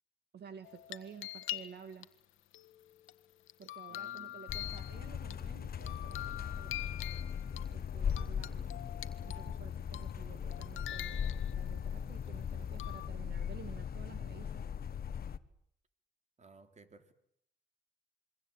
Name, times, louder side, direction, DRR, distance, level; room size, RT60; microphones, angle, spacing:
voice 1, 0.3-2.1 3.6-7.4 7.7-8.7 9.2-14.6, right 7 dB, 55° right, 9 dB, 2.2 m, -52 dB
sound 1, 0.6-2.0 2.5-5.4 5.8-7.7 8.1-9.6 9.9-10.2 10.5-11.8 12.8-13.1, left 13 dB, 85° left, 1.5 m, -44 dB
voice 2, 3.9-4.6 16.4-17.1, right 4 dB, 35° right, 8 dB, 3.5 m, -59 dB
sound 2, 4.5-15.4, left 8 dB, 50° left, 1.3 m, -39 dB
27.0 x 23.5 x 9.1 m, 0.71 s
cardioid pair, 90°, 20 cm